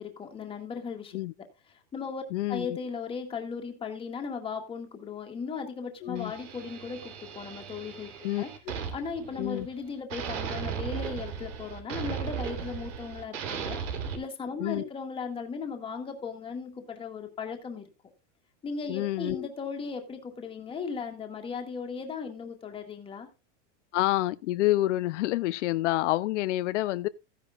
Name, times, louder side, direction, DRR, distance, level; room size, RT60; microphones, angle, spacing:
voice 1, 0.0-1.5 1.9-2.2 2.5-8.1 8.4-8.5 8.9-13.8 14.1-17.8 18.6-23.3, left 5 dB, 15° left, 1.9 m, -37 dB
voice 2, 2.3-2.8 6.0-6.3 8.2-8.4 9.4-9.7 14.6-14.9 18.9-19.5 23.9-27.1, left 16 dB, 75° left, 0.6 m, -28 dB
sound 1, 6.1-9.8 10.1-14.2, right 7 dB, 85° right, 3.5 m, -37 dB
15.0 x 10.0 x 2.4 m
supercardioid pair, 165°, 36 cm